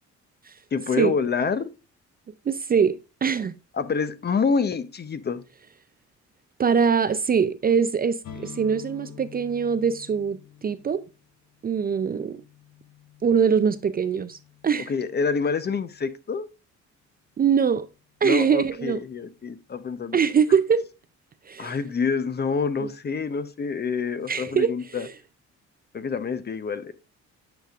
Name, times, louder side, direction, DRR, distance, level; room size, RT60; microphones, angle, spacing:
voice 1, 0.7-1.7 3.7-5.4 14.9-16.5 18.2-20.2 21.6-25.1 25.9-26.9, left 5 dB, 35° left, 0.6 m, -27 dB
voice 2, 2.5-3.5 6.6-11.0 11.6-12.4 13.2-14.4 14.6-14.9 17.4-17.9 18.2-19.0 20.1-20.8 21.5-21.8 24.3-25.1, right 6 dB, 30° right, 0.4 m, -23 dB
sound 1, 8.2-15.9, left 6 dB, 65° left, 1.3 m, -47 dB
9.1 x 5.1 x 2.4 m
cardioid pair, 90°, 30 cm